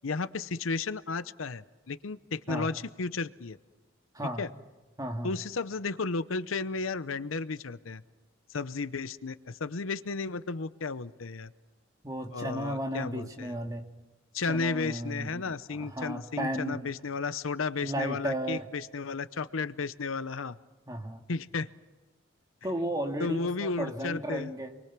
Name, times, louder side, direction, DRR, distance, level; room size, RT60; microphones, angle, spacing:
voice 1, 0.0-3.6 4.4-4.5 5.2-8.0 8.5-11.5 12.3-13.5 14.3-20.6 21.3-21.7 23.2-24.5, left 4 dB, 85° left, 14 dB, 0.8 m, -33 dB
voice 2, 4.1-4.5 5.0-5.4 12.0-13.9 14.5-16.9 17.8-18.7 20.9-21.2 22.6-24.8, right 1 dB, 20° right, 4 dB, 2.1 m, -34 dB
28.5 x 23.0 x 6.1 m, 1.2 s
head